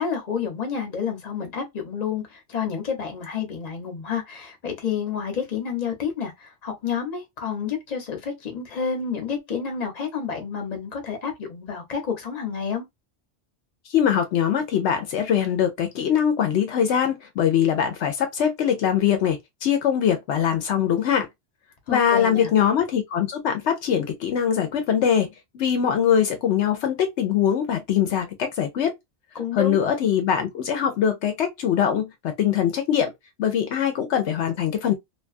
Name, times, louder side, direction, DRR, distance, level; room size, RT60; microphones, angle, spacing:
voice 1, 0.0-12.9 21.9-22.5 29.3-29.8, left 7 dB, 40° left, 0.9 m, -29 dB
voice 2, 13.9-21.3 21.9-25.3 25.5-28.9 29.5-33.1 33.4-34.9, left 8 dB, 75° left, 0.9 m, -22 dB
2.6 x 2.3 x 2.4 m
omnidirectional pair, 1.2 m